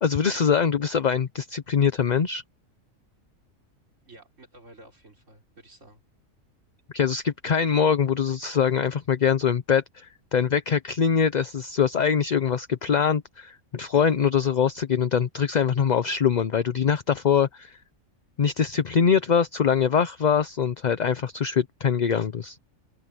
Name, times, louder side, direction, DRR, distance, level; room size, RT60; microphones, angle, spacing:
voice 1, 0.0-2.4 6.9-17.8 18.4-22.6, left 7 dB, 45° left, 0.6 m, -23 dB
voice 2, 4.1-6.0, right 2 dB, 65° right, 4.4 m, -51 dB
omnidirectional pair, 1.4 m